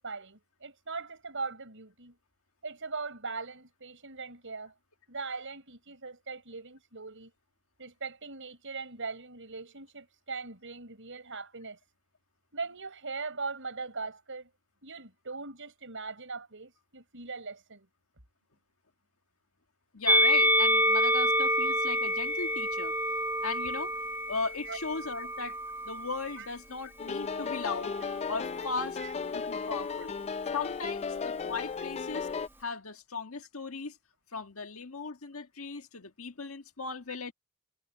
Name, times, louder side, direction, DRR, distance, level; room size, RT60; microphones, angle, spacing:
voice 1, 0.0-2.2 2.6-4.7 5.1-7.3 7.8-11.8 12.5-14.5 14.8-17.9 24.7-24.8 26.4-26.5 29.0-29.1, right 4 dB, 65° right, 7.5 m, -40 dB
voice 2, 19.9-22.9 23.4-23.9 24.3-25.6 25.8-27.9 28.3-29.0 29.3-30.2 30.5-32.3 32.6-34.0 34.3-37.3, left 4 dB, 75° left, 1.8 m, -37 dB
Musical instrument, 20.1-26.5 27.3-28.3, equal, 10° right, 1.1 m, -28 dB
sound 1, 27.0-32.5, left 5 dB, 30° left, 0.4 m, -35 dB
head